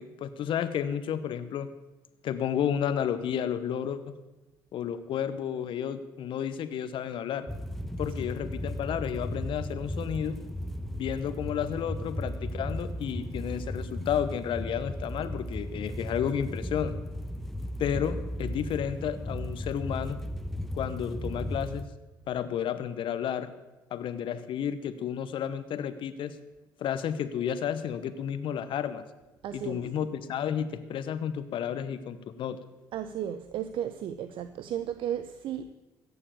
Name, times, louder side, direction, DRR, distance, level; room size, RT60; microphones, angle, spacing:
voice 1, 0.0-1.7 2.2-4.1 4.7-7.5 8.0-10.4 10.9-16.9 17.8-20.2 20.7-21.9 22.3-23.5 23.9-26.4 26.8-29.0 29.5-32.6, left 9 dB, 60° left, 1.0 m, -32 dB
sound 1, 7.5-21.9, equal, 5° left, 1.0 m, -36 dB
voice 2, 29.4-29.8 32.9-35.7, right 10 dB, 60° right, 0.7 m, -34 dB
16.0 x 7.1 x 8.4 m
hypercardioid pair, 55°, 10 cm